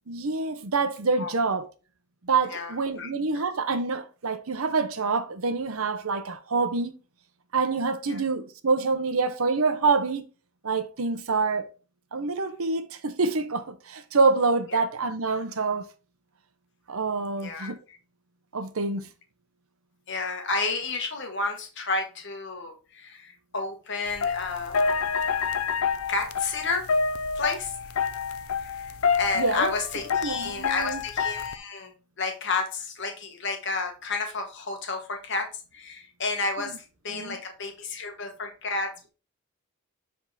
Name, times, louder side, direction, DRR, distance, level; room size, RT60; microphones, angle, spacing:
voice 1, 0.1-1.7 2.2-6.9 7.5-10.2 10.6-11.7 12.1-15.8 16.9-17.8 18.5-19.1 29.4-29.7 30.2-31.0 37.1-37.4, right 4 dB, 75° right, 0.8 m, -26 dB
voice 2, 2.4-3.4 8.1-8.2 14.7-14.8 17.4-18.0 20.1-25.0 26.1-26.9 27.3-27.9 28.6-38.9, left 3 dB, 55° left, 1.3 m, -31 dB
sound 1, 24.0-31.6, left 6 dB, 75° left, 0.5 m, -28 dB
7.4 x 3.7 x 3.9 m
head